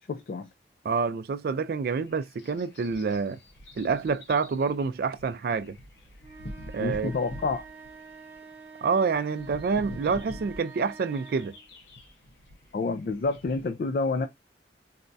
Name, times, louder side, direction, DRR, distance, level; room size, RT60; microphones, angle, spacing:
voice 1, 0.1-0.5 6.8-7.6 12.7-14.3, left 3 dB, 50° left, 0.3 m, -28 dB
voice 2, 0.8-3.4 3.8-5.8 6.7-7.1 8.8-11.5, right 5 dB, 55° right, 0.3 m, -27 dB
sound 1, 2.0-13.7, left 1 dB, 70° left, 0.9 m, -45 dB
sound 2, 6.2-11.7, right 5 dB, 15° right, 0.9 m, -47 dB
4.1 x 2.2 x 2.5 m
head